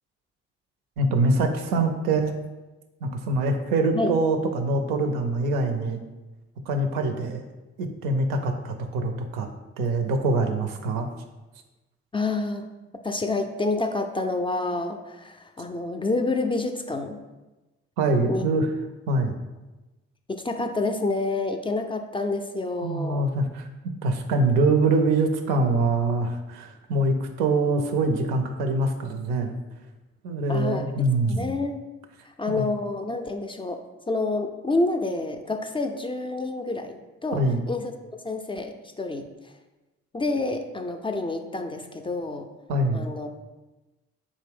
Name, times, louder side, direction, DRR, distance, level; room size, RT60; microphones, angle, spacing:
voice 1, 1.0-2.3 3.0-6.0 6.7-7.4 7.8-9.5 9.8-11.1 18.0-18.7 19.1-19.4 22.8-23.7 24.0-29.6 30.2-31.5 32.5-32.7 37.3-37.6 42.7-43.1, right 2 dB, 85° right, 6 dB, 0.5 m, -24 dB
voice 2, 12.1-12.7 13.0-17.2 18.3-18.5 20.3-23.2 30.5-30.9 31.2-31.8 32.4-33.8 34.1-37.9 38.2-39.3 40.1-42.5 42.9-43.3, left 2 dB, 15° left, 5 dB, 0.3 m, -28 dB
3.6 x 2.6 x 3.4 m, 1.1 s
hypercardioid pair, 40°, 32 cm